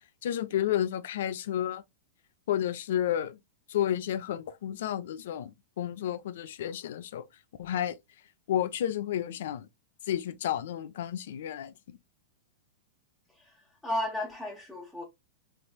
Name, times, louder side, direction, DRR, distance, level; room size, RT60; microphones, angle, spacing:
voice 1, 0.2-1.8 2.5-3.4 3.7-7.2 7.6-8.0 8.5-9.7 10.1-12.0, left 11 dB, 70° left, 0.5 m, -31 dB
voice 2, 13.3-15.0, left 1 dB, ahead, 0.8 m, -34 dB
3.4 x 2.9 x 2.2 m
supercardioid pair, 145°, 0 cm